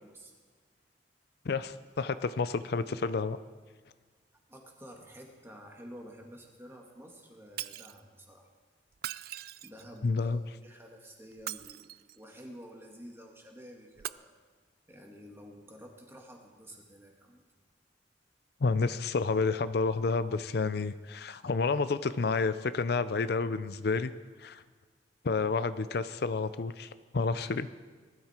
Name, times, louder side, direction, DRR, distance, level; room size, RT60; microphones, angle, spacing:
voice 1, 0.0-0.3 4.5-8.5 9.6-11.8 12.2-14.3 14.9-17.4 27.4-27.7, equal, 15° right, 1 dB, 2.1 m, -50 dB
voice 2, 1.5-3.4 10.0-10.4 18.6-24.1 24.4-24.6 25.2-27.7, left 4 dB, 65° left, 13 dB, 0.5 m, -30 dB
Shatter, 7.6-8.0 8.9-10.0 11.3-12.2 14.0-14.1, right 13 dB, 60° right, 0.4 m, -40 dB
20.0 x 13.0 x 4.5 m, 1.4 s
head